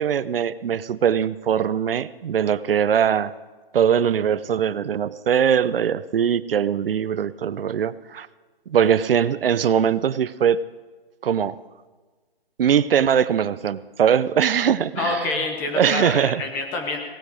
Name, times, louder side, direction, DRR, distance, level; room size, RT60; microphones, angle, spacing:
voice 1, 0.0-3.3 3.7-8.3 8.7-10.6 11.2-11.5 12.6-15.2 15.7-16.4, right 8 dB, 65° right, 17 dB, 0.6 m, -21 dB
voice 2, 15.0-17.0, left 3 dB, 5° left, 4 dB, 0.4 m, -27 dB
18.0 x 12.5 x 5.1 m, 1.3 s
hypercardioid pair, 145°, 30 cm